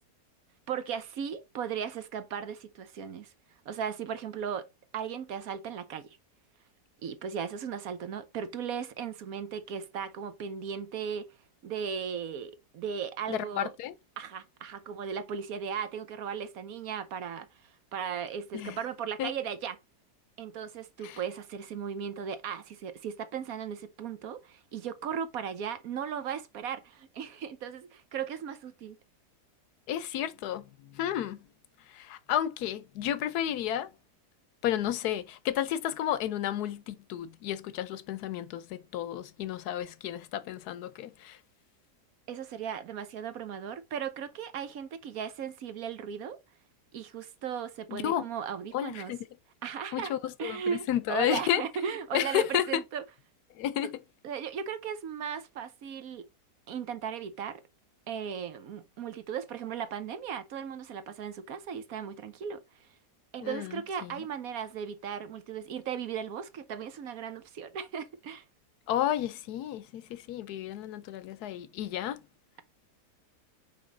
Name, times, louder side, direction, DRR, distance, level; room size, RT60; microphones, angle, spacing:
voice 1, 0.7-3.3 3.7-4.7 4.9-6.1 7.0-11.3 11.6-13.7 14.2-17.5 17.9-19.8 20.4-29.0 42.3-46.4 46.9-49.1 49.6-50.1 50.4-53.0 54.2-56.2 56.7-57.6 58.1-62.6 63.3-68.4, right 7 dB, 65° right, 1.1 m, -36 dB
voice 2, 13.3-13.9 18.5-18.8 19.2-19.3 21.0-21.2 29.9-31.4 31.9-33.9 34.6-41.4 47.9-48.3 48.7-49.2 49.9-51.6 52.1-52.8 53.5-54.0 63.4-64.3 68.9-72.2, left 11 dB, 75° left, 1.2 m, -32 dB
5.3 x 5.1 x 3.8 m
omnidirectional pair, 1.7 m